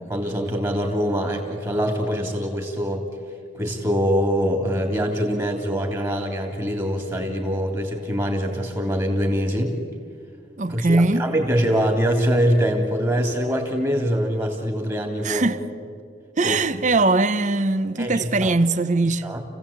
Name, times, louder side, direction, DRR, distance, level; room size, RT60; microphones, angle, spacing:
voice 1, 0.1-3.1 3.5-9.7 10.7-15.5 16.4-16.9 18.0-18.5 19.2-19.4, equal, 20° right, 2.9 m, -24 dB
voice 2, 10.6-11.2 15.2-15.6 16.4-19.2, right 2 dB, 40° right, 0.8 m, -21 dB
29.5 x 16.5 x 8.7 m
head